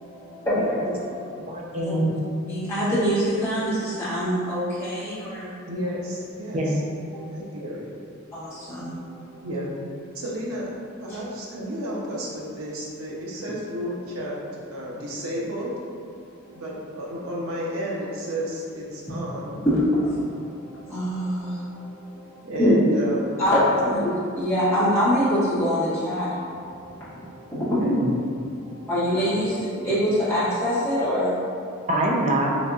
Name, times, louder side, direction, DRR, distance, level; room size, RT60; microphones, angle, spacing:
voice 1, 0.0-1.3 1.8-1.9 2.5-5.6 7.1-7.3 8.3-9.5 11.1-11.2 16.4-16.6 19.6-22.8 23.1-27.7 28.6-31.9, equal, 10° left, -13 dB, 1.1 m, -25 dB
voice 2, 0.6-1.0 5.7-6.6 7.1-7.9 9.4-9.7 10.1-10.7 11.0-14.4 14.7-15.7 16.5-19.6 22.4-23.7 27.5-28.0, equal, 90° right, -4 dB, 0.7 m, -32 dB
voice 3, 1.4-2.2 6.5-6.8 27.8-28.1 31.9-32.5, right 1 dB, 35° right, -2 dB, 0.4 m, -24 dB
3.9 x 2.7 x 2.3 m, 2.4 s
head